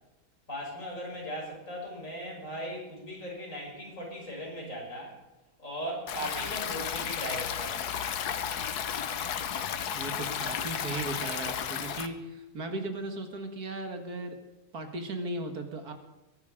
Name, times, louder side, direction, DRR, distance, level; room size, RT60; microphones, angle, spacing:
voice 1, 0.5-5.2 5.6-7.9, equal, 55° left, -2 dB, 6.1 m, -38 dB
Stream, 6.1-12.1, left 8 dB, 85° left, 1.5 m, -33 dB
voice 2, 9.9-14.4 14.7-15.9, right 2 dB, 75° right, 5 dB, 2.3 m, -37 dB
22.5 x 10.5 x 5.0 m, 1.1 s
omnidirectional pair, 1.7 m